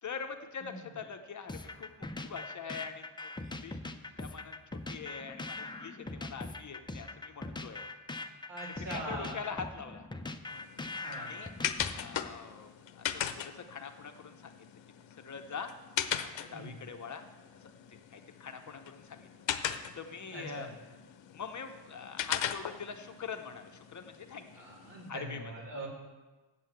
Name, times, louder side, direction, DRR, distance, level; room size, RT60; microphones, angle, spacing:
voice 1, 0.0-3.8 4.2-7.8 8.8-10.1 11.2-11.5 12.0-14.6 15.2-15.7 16.2-17.3 17.6-19.3 19.7-20.7 21.3-24.5 25.1-25.5, left 6 dB, 40° left, 6 dB, 0.7 m, -44 dB
voice 2, 0.6-1.0 8.5-9.4 11.0-11.3 16.5-16.7 20.3-20.7 24.5-25.9, right 1 dB, 70° right, -3 dB, 3.3 m, -42 dB
sound 1, 1.5-12.3, left 2 dB, 10° left, 0.5 m, -41 dB
sound 2, 10.5-25.1, left 10 dB, 75° left, 0.7 m, -40 dB
7.7 x 7.6 x 7.8 m, 1.2 s
wide cardioid pair, 130°, 45 cm